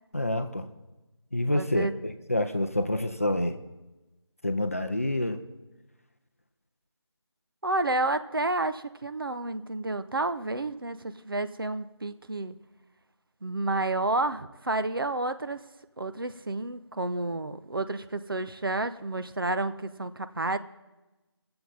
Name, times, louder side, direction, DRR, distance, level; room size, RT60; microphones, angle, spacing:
voice 1, 0.1-0.7 1.3-3.6 4.4-5.4, left 1 dB, 30° left, 8 dB, 0.5 m, -27 dB
voice 2, 1.5-1.9 7.6-12.6 13.4-15.6 16.0-20.6, right 2 dB, 50° right, 11 dB, 0.6 m, -30 dB
23.0 x 7.7 x 4.2 m, 1.1 s
figure-of-eight pair, 175°, 15 cm